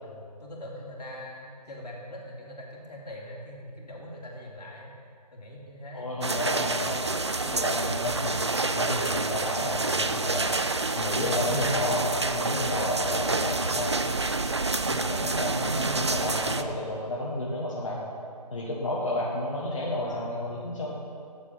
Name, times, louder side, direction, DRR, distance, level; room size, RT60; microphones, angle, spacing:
voice 1, 0.0-4.9 5.3-6.3 13.5-13.7 20.0-20.7, left 1 dB, 75° left, -3 dB, 2.6 m, -43 dB
voice 2, 5.9-10.5 10.9-13.9 14.9-18.1 18.5-20.9, left 1 dB, 50° left, -6 dB, 1.4 m, -31 dB
sound 1, 6.2-16.6, right 3 dB, 40° right, 0.4 m, -28 dB
8.6 x 7.3 x 5.8 m, 2.3 s
figure-of-eight pair, 175°, 21 cm